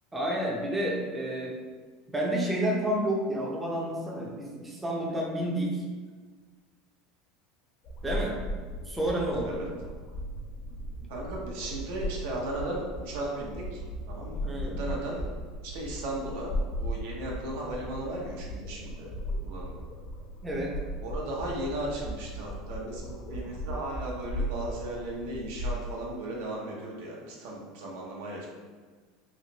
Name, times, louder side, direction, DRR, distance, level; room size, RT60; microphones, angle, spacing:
voice 1, 0.1-1.5 2.1-5.8 8.0-8.4 8.9-9.6 14.4-14.8 20.4-20.7, right 1 dB, 10° right, -3 dB, 0.5 m, -30 dB
sound 1, 7.8-25.8, equal, 45° left, 0.7 m, -37 dB
voice 2, 8.1-8.4 9.4-9.7 11.1-15.2 15.6-19.1 19.4-19.8 21.0-28.5, right 1 dB, 75° right, -2 dB, 0.8 m, -36 dB
3.1 x 2.9 x 2.8 m, 1.5 s
supercardioid pair, 135°, 0 cm